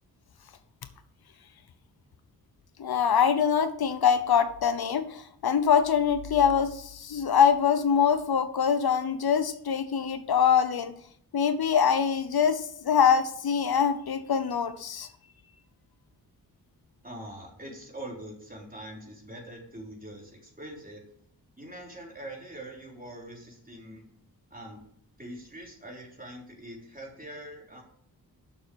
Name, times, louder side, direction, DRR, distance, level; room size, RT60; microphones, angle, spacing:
voice 1, 2.8-10.9 11.3-15.1, left 7 dB, 70° left, 11 dB, 0.9 m, -24 dB
voice 2, 17.0-21.0 21.6-24.0 24.5-24.8 25.2-27.8, right 1 dB, 20° right, -1 dB, 3.8 m, -43 dB
6.9 x 6.9 x 7.8 m, 0.66 s
cardioid pair, 50°, 39 cm